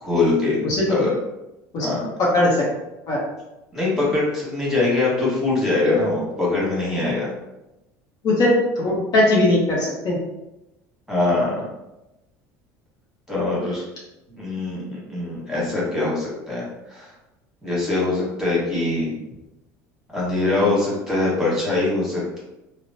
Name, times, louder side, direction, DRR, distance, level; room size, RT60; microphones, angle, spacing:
voice 1, 0.0-0.6 0.9-1.1 1.8-2.1 3.7-7.3 11.1-11.7 13.3-13.8 14.3-17.1 17.6-19.1 20.1-22.4, left 2 dB, 5° right, -6 dB, 1.5 m, -23 dB
voice 2, 2.2-2.6 3.1-3.2 8.2-10.2, left 1 dB, 50° left, -4 dB, 0.8 m, -19 dB
2.9 x 2.0 x 2.7 m, 0.95 s
supercardioid pair, 90°, 8 cm